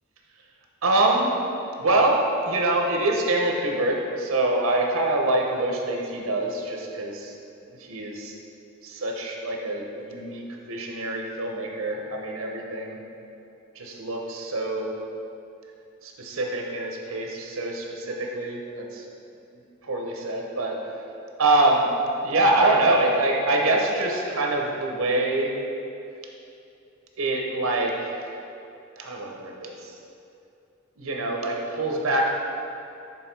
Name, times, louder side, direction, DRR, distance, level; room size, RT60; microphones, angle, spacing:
voice 1, 0.8-1.3 1.8-7.3 7.9-8.3 8.8-13.0 13.8-14.9 16.0-19.0 19.9-20.8 21.4-21.9 22.2-25.5 27.2-28.3 29.0-29.9 31.0-32.3, right 2 dB, 75° right, 0 dB, 0.8 m, -25 dB
6.3 x 3.5 x 4.5 m, 2.7 s
head